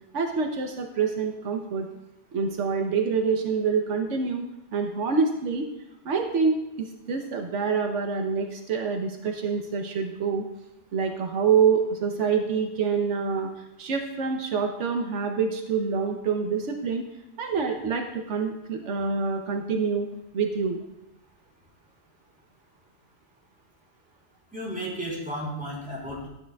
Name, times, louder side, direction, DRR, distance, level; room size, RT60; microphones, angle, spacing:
voice 1, 0.1-1.9 2.3-4.5 4.7-5.7 6.0-6.6 7.1-10.4 10.9-17.1 17.4-20.1 20.3-20.8, right 5 dB, 85° right, 3 dB, 1.1 m, -26 dB
voice 2, 24.5-26.3, equal, 5° right, -7 dB, 3.7 m, -33 dB
12.0 x 8.6 x 2.3 m, 0.89 s
omnidirectional pair, 1.2 m